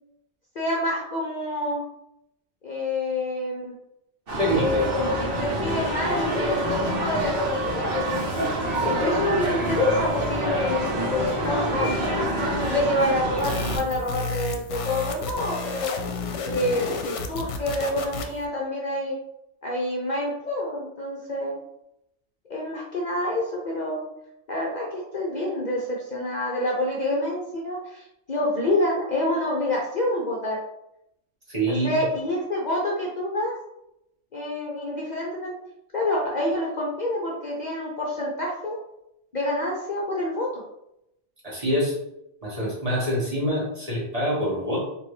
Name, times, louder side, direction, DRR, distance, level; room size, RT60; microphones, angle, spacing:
voice 1, 0.5-1.8 2.6-3.7 4.5-8.3 8.8-11.9 12.4-15.9 16.4-19.2 19.6-21.6 22.5-24.0 24.5-30.6 31.7-33.6 34.3-35.5 35.9-38.8 39.3-40.5, left 1 dB, 45° left, -3 dB, 0.7 m, -27 dB
sound 1, 4.3-13.8, right 1 dB, 50° right, 1.4 m, -27 dB
voice 2, 4.4-4.8 31.5-31.9 41.4-41.9 42.4-44.8, equal, 30° right, -6 dB, 1.5 m, -25 dB
sound 2, 13.4-18.5, left 4 dB, 80° left, 0.9 m, -32 dB
4.1 x 3.0 x 3.2 m, 0.82 s
omnidirectional pair, 1.2 m